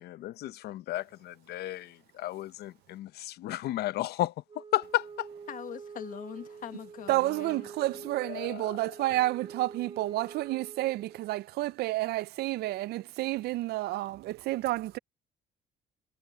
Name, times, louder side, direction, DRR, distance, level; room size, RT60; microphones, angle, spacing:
voice 1, 0.0-5.3 8.2-8.8, left 14 dB, 70° left, 0.8 m, -34 dB
Wind instrument woodwind instrument, 4.5-11.3, right 5 dB, 35° right, 2.9 m, -46 dB
voice 2, 5.5-7.7, left 9 dB, 55° left, 1.5 m, -42 dB
voice 3, 7.1-15.0, right 17 dB, 70° right, 0.4 m, -30 dB
cardioid pair, 110°, 17 cm